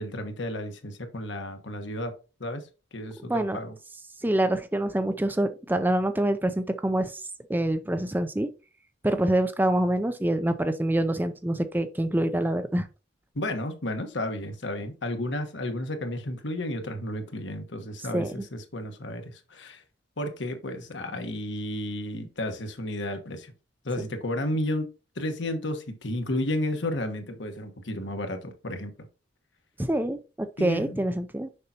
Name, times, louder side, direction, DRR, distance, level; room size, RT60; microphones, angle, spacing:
voice 1, 0.0-2.1 2.4-3.8 13.3-19.8 20.2-23.5 23.8-24.9 25.1-28.9 30.6-31.0, left 1 dB, 75° left, 1.2 m, -32 dB
voice 2, 3.2-3.6 4.2-7.2 7.5-8.5 9.0-12.9 18.1-18.3 29.8-31.5, right 1 dB, 10° right, 0.4 m, -26 dB
6.7 x 5.4 x 2.8 m
head